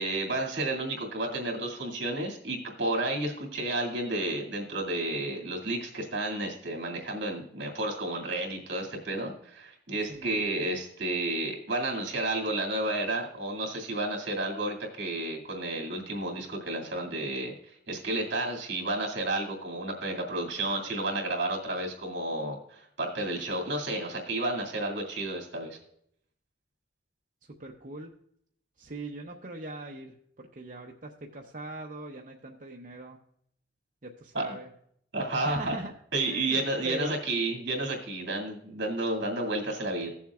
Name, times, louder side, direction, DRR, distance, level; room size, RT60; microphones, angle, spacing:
voice 1, 0.0-25.8 34.3-34.5 35.1-35.8 36.1-40.1, right 2 dB, 70° right, 0 dB, 2.3 m, -31 dB
voice 2, 10.1-10.4 27.5-28.1 28.8-33.2 34.0-34.7 35.4-35.9 36.3-37.1, right 1 dB, 45° right, 0 dB, 0.7 m, -41 dB
16.0 x 7.2 x 2.4 m, 0.69 s
head